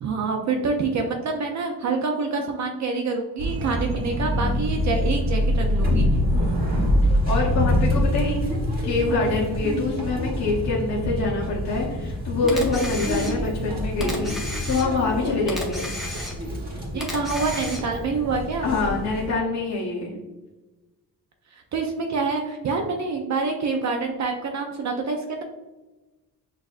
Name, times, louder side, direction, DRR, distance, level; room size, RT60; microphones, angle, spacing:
voice 1, 0.0-6.1 16.9-18.7 21.5-25.4, right 4 dB, 50° right, 3 dB, 0.4 m, -26 dB
sound 1, 3.4-19.3, equal, 25° right, 1.1 m, -25 dB
voice 2, 6.3-6.7 7.3-8.4 8.8-15.9 18.6-20.2, left 3 dB, 45° left, -5 dB, 0.8 m, -25 dB
Camera, 12.5-13.6 14.0-15.1 15.5-16.6 17.0-18.1, left 1 dB, ahead, 0.6 m, -34 dB
6.1 x 2.5 x 2.4 m, 1.1 s
wide cardioid pair, 155°, 37 cm